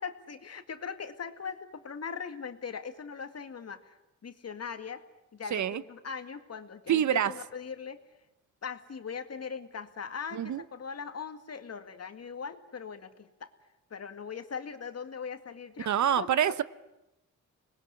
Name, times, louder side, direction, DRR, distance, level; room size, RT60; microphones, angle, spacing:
voice 1, 0.0-4.0 4.2-5.0 5.3-8.0 8.6-13.5 13.9-16.3, left 6 dB, 50° left, 2.1 m, -40 dB
voice 2, 5.5-5.8 6.9-7.3 10.3-10.6 15.9-16.6, right 10 dB, 65° right, 0.9 m, -26 dB
26.5 x 20.0 x 9.8 m
cardioid pair, 80°, 32 cm